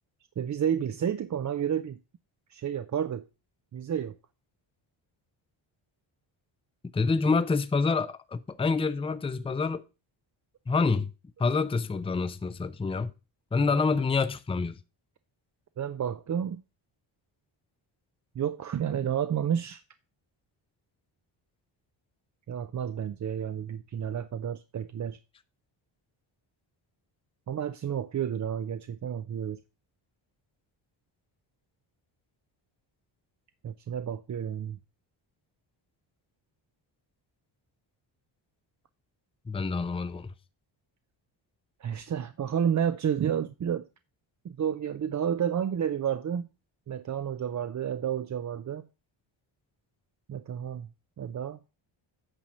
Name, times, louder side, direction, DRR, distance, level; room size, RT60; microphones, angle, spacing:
voice 1, 0.4-2.0 2.5-3.3 3.7-4.2 15.8-16.6 18.4-19.8 22.5-25.2 27.5-29.6 33.6-34.8 41.8-43.9 44.4-46.5 46.9-48.9 50.3-50.9 51.2-51.6, right 9 dB, 40° right, 0.5 m, -30 dB
voice 2, 6.9-9.8 10.7-11.1 11.4-13.1 13.5-14.8 39.5-40.3, left 4 dB, 10° left, 0.4 m, -27 dB
8.9 x 4.2 x 6.1 m
wide cardioid pair, 130°, 49 cm